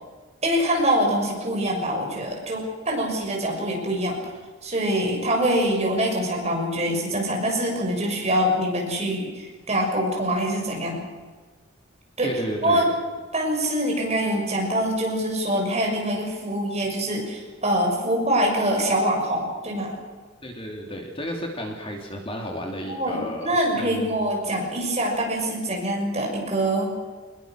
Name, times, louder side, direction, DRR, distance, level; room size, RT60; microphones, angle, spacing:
voice 1, 0.4-4.2 4.6-11.0 12.2-12.3 12.6-12.9 13.3-20.0 22.9-26.9, right 1 dB, 30° right, 0 dB, 6.5 m, -24 dB
voice 2, 12.2-12.9 20.4-24.2, equal, 25° left, 2 dB, 2.9 m, -33 dB
25.5 x 21.0 x 6.3 m, 1.4 s
head